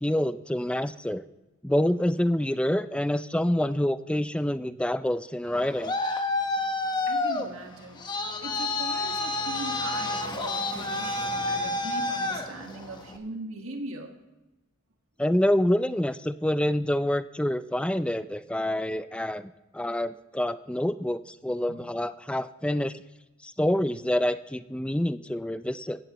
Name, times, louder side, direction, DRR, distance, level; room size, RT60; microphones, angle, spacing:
voice 1, 0.0-1.2 1.6-5.9 15.2-22.9 23.4-26.0, left 1 dB, 5° left, 13 dB, 0.3 m, -27 dB
Traffic noise roadway noise, 5.5-13.2, left 2 dB, 20° left, 1.0 m, -29 dB
voice 2, 7.1-8.1 8.4-14.1 21.7-21.9, right 2 dB, 85° right, 3 dB, 1.6 m, -40 dB
17.0 x 15.0 x 3.0 m, 1.0 s
head